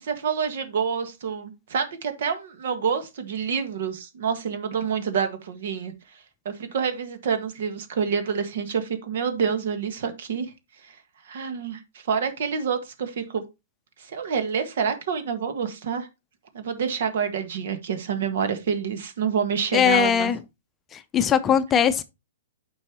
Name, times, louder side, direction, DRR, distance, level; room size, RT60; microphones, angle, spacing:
voice 1, 0.0-5.9 6.5-10.5 10.8-11.0 11.3-13.4 14.0-16.1 16.5-20.3, right 6 dB, 60° right, 1.6 m, -27 dB
voice 2, 19.7-20.4 20.9-22.0, left 8 dB, 20° left, 0.6 m, -20 dB
8.9 x 5.5 x 2.9 m
hypercardioid pair, 125°, 0 cm